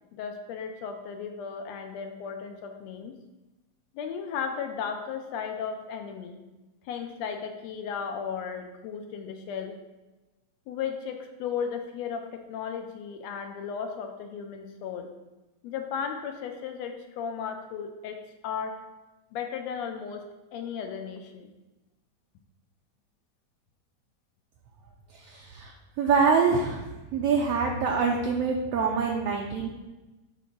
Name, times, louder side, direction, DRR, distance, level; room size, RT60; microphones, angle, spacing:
voice 1, 0.1-3.1 4.0-6.4 6.9-9.8 10.7-15.1 15.6-18.8 19.3-20.3 20.5-21.5, left 7 dB, 75° left, 5 dB, 1.7 m, -35 dB
voice 2, 25.1-26.8 27.1-29.7, right 5 dB, 75° right, 0 dB, 1.5 m, -25 dB
7.0 x 3.6 x 5.9 m, 1.1 s
omnidirectional pair, 3.3 m